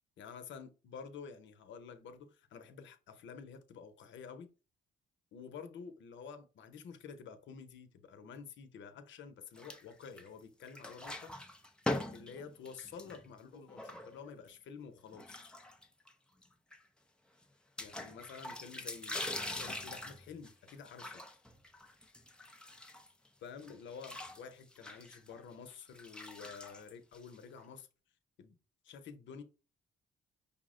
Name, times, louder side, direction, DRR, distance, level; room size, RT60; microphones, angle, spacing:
voice 1, 0.2-4.5 5.3-11.4 12.1-15.4 17.8-21.2 23.4-27.9 28.4-28.6 28.8-29.4, left 6 dB, 70° left, 0.8 m, -50 dB
sound 1, 9.6-10.4 10.7-14.5 15.1-16.1 16.4-16.5 16.7-16.8 17.8-23.3 23.6-27.6, left 1 dB, 5° left, 0.5 m, -43 dB
5.5 x 2.1 x 3.7 m
cardioid pair, 90°, 20 cm